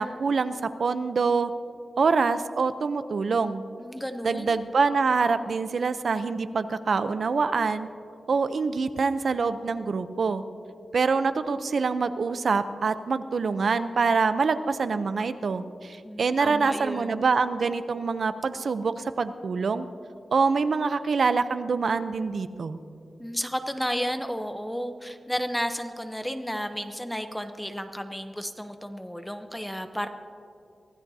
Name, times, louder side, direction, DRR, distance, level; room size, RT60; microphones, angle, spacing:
voice 1, 0.0-1.5 2.0-3.6 4.2-7.9 8.3-10.4 10.9-19.9 20.3-22.8, right 4 dB, 65° right, 11 dB, 0.6 m, -25 dB
voice 2, 3.8-4.6 16.0-17.2 23.2-30.1, equal, 5° left, 8 dB, 0.7 m, -32 dB
24.0 x 16.0 x 2.8 m, 2.5 s
wide cardioid pair, 95°, 0 cm